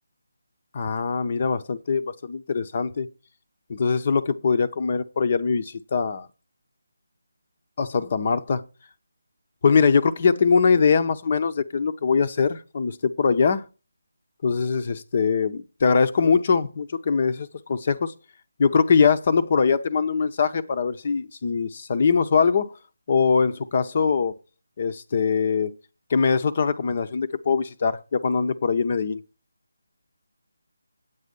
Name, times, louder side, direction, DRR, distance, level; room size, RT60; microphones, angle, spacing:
voice 1, 0.7-3.1 3.7-6.3 7.8-8.6 9.6-13.6 14.4-18.1 18.6-22.7 23.1-24.3 24.8-25.7 26.1-29.2, left 5 dB, 40° left, 0.8 m, -22 dB
9.3 x 8.3 x 5.3 m
figure-of-eight pair, 155°, 0 cm